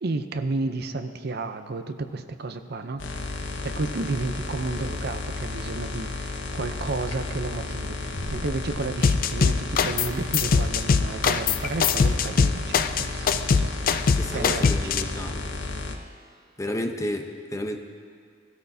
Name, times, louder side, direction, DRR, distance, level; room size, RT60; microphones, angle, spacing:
voice 1, 0.0-3.0 3.3-14.1 14.3-14.7 14.9-15.2, right 3 dB, 55° right, 9 dB, 0.6 m, -32 dB
sound 1, 3.0-16.0, left 3 dB, 70° left, 0.9 m, -33 dB
sound 2, 9.0-10.1 10.3-15.0, left 5 dB, 50° left, 0.4 m, -21 dB
voice 2, 14.2-15.4 16.6-17.8, left 1 dB, 15° left, 5 dB, 0.8 m, -31 dB
18.5 x 13.0 x 2.7 m, 2.1 s
head